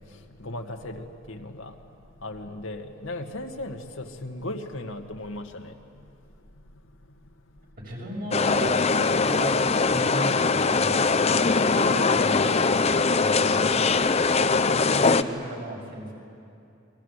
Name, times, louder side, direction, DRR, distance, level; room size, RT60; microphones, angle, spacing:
voice 1, 0.4-1.7 2.2-5.7, left 1 dB, 85° left, 4 dB, 2.0 m, -36 dB
voice 2, 7.8-9.6 9.9-11.3 11.5-13.7 14.4-16.1, right 1 dB, 50° right, -1 dB, 6.6 m, -35 dB
sound 1, 8.3-15.2, left 4 dB, 30° left, 0.7 m, -22 dB
28.5 x 23.0 x 8.3 m, 2.6 s
head